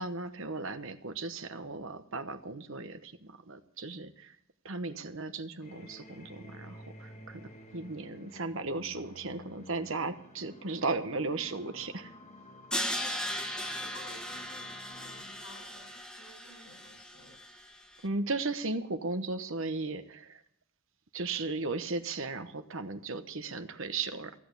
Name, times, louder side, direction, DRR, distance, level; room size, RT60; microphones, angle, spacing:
voice 1, 0.0-4.3 4.6-12.1 18.0-20.4 21.1-24.3, right 3 dB, 60° right, 9 dB, 1.1 m, -36 dB
sound 1, 5.6-15.2, left 1 dB, 30° left, 1.5 m, -51 dB
Crash cymbal, 12.7-17.8, equal, 5° left, 1.0 m, -37 dB
voice 2, 13.0-17.4, left 2 dB, 85° left, 3 dB, 5.6 m, -54 dB
15.5 x 8.6 x 8.3 m, 0.69 s
head